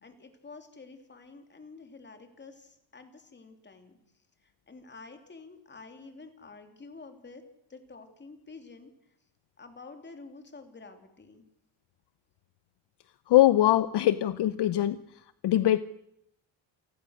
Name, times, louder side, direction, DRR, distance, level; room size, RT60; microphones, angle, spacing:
voice 1, 0.0-4.0 4.4-7.4 7.7-8.9 9.6-11.4, left 3 dB, 25° left, 6 dB, 3.2 m, -49 dB
voice 2, 13.3-15.0 15.4-15.8, left 13 dB, 60° left, 14 dB, 0.9 m, -22 dB
28.5 x 20.0 x 6.5 m, 0.79 s
cardioid pair, 150°, 45 cm